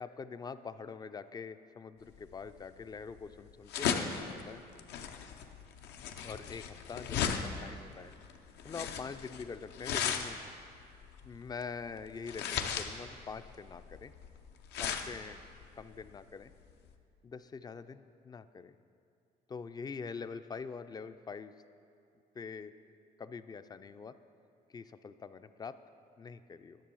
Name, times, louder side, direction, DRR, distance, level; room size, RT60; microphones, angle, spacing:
voice 1, 0.0-4.6 6.2-8.1 8.6-10.4 11.2-14.1 14.8-15.4 15.8-16.5 17.2-18.7 19.5-21.5 22.3-22.7 23.2-24.2 24.7-25.8 26.2-26.8, left 5 dB, 25° left, 12 dB, 0.3 m, -44 dB
sound 1, 2.1-16.9, left 7 dB, 85° left, 0.7 m, -37 dB
10.5 x 6.8 x 6.2 m, 2.4 s
cardioid pair, 110°, 17 cm